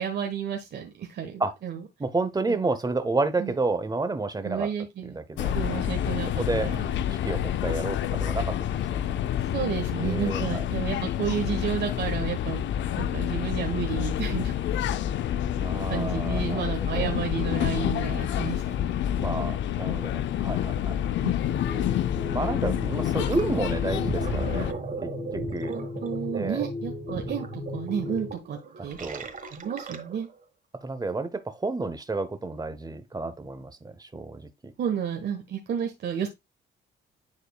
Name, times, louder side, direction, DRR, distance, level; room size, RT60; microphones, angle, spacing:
voice 1, 0.0-1.8 2.5-2.6 3.4-3.5 4.4-5.2 5.5-7.0 9.5-12.7 12.9-14.6 15.9-18.9 21.2-21.4 25.7-29.1 29.5-30.3 34.8-36.3, right 8 dB, 60° right, 1.3 m, -32 dB
voice 2, 2.0-4.7 5.0-5.5 6.4-6.7 7.1-9.0 10.0-10.6 15.6-17.1 19.2-21.0 22.3-24.7 25.0-25.8 26.3-26.6 28.8-29.3 30.8-34.7, right 3 dB, 20° right, 0.9 m, -30 dB
sound 1, 5.4-24.7, left 10 dB, 70° left, 0.5 m, -28 dB
sound 2, 21.5-28.3, left 3 dB, 30° left, 2.0 m, -36 dB
Gurgling, 23.3-23.5 23.9-30.3, right 4 dB, 45° right, 1.5 m, -37 dB
10.0 x 4.3 x 2.3 m
cardioid pair, 90°, 20 cm